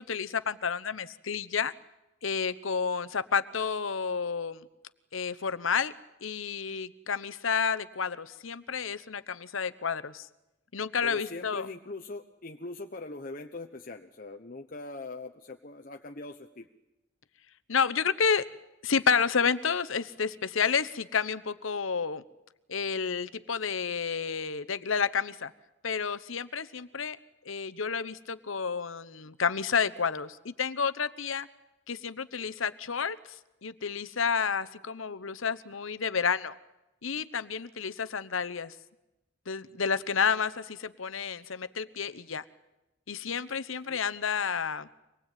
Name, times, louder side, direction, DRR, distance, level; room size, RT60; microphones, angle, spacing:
voice 1, 0.0-1.7 2.2-4.6 5.1-5.9 6.2-10.3 10.7-11.7 17.7-18.5 18.8-22.2 22.7-25.5 25.8-27.2 27.4-31.5 31.9-33.2 33.6-36.5 37.0-38.7 39.5-42.4 43.1-44.9, left 6 dB, 75° left, 15 dB, 0.9 m, -30 dB
voice 2, 11.0-16.7 43.9-44.0, left 2 dB, 45° left, 4 dB, 1.0 m, -42 dB
25.0 x 19.0 x 9.1 m, 0.97 s
head